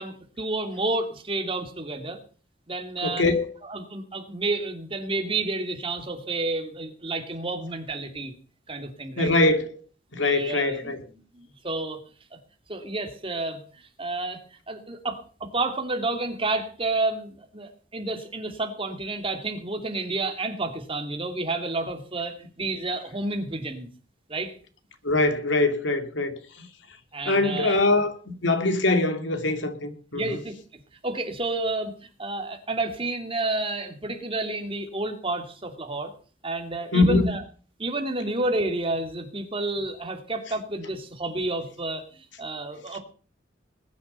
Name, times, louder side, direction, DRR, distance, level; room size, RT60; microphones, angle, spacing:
voice 1, 0.0-2.2 2.7-3.2 3.6-8.3 8.7-9.3 10.1-12.0 12.7-13.6 14.0-14.4 14.7-23.9 24.3-24.5 27.1-27.8 30.1-31.9 32.2-36.1 36.4-37.4 37.8-43.0, right 2 dB, 30° right, 2.7 m, -30 dB
voice 2, 3.0-3.5 9.2-9.7 10.1-11.0 25.0-26.7 27.3-30.4 36.9-37.3, left 2 dB, 85° left, 2.6 m, -23 dB
20.5 x 10.0 x 5.6 m
head